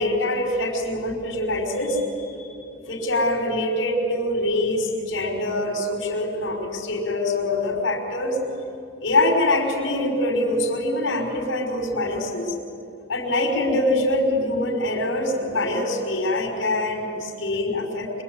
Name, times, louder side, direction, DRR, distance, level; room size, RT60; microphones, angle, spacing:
voice 1, 0.0-2.0 2.4-2.5 2.9-8.4 9.0-12.5 13.1-18.2, left 1 dB, 90° left, 1 dB, 5.2 m, -24 dB
26.5 x 23.5 x 9.6 m, 2.5 s
head